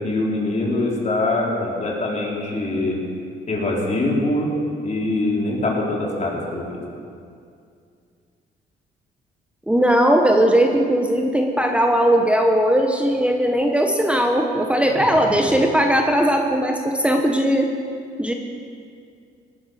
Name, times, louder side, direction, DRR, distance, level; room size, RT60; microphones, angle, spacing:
voice 1, 0.0-3.0 3.5-4.5 4.8-6.8 14.9-15.7, left 2 dB, 35° left, -2 dB, 3.8 m, -24 dB
voice 2, 9.7-17.7 18.2-18.3, equal, 5° right, 2 dB, 1.2 m, -18 dB
18.0 x 10.5 x 6.2 m, 2.4 s
cardioid pair, 90°, 20 cm